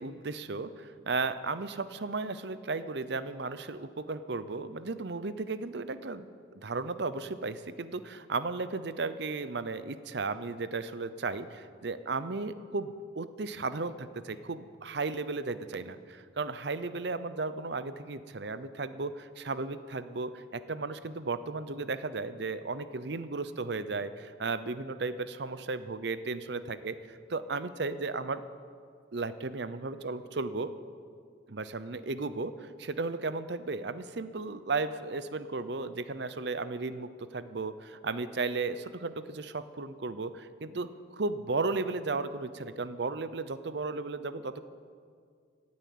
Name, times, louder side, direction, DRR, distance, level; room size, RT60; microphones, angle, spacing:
voice 1, 0.0-6.3 6.6-28.4 29.1-30.7 31.5-44.6, right 3 dB, 60° right, 13 dB, 0.7 m, -35 dB
16.5 x 9.6 x 8.6 m, 2.1 s
head